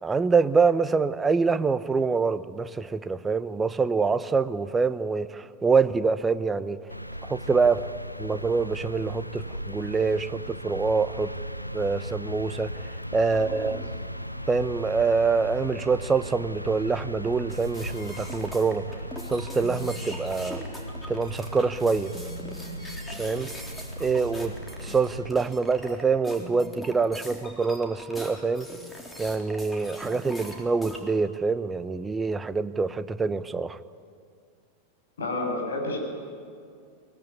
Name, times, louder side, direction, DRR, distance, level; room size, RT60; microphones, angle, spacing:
voice 1, 0.0-6.8 7.2-7.9 8.2-11.3 11.7-12.7 13.1-13.8 14.5-18.9 19.3-20.6 21.1-22.1 23.2-23.5 24.0-24.5 24.8-28.7 29.2-33.8, right 4 dB, 15° right, 0.9 m, -25 dB
sound 1, 6.9-25.3, equal, 90° left, 0.8 m, -37 dB
voice 2, 13.3-13.8 35.2-36.0, left 2 dB, 65° left, 6.9 m, -31 dB
sound 2, 17.5-31.0, equal, 5° left, 3.9 m, -41 dB
22.5 x 21.0 x 9.8 m
figure-of-eight pair, 90°, 0 cm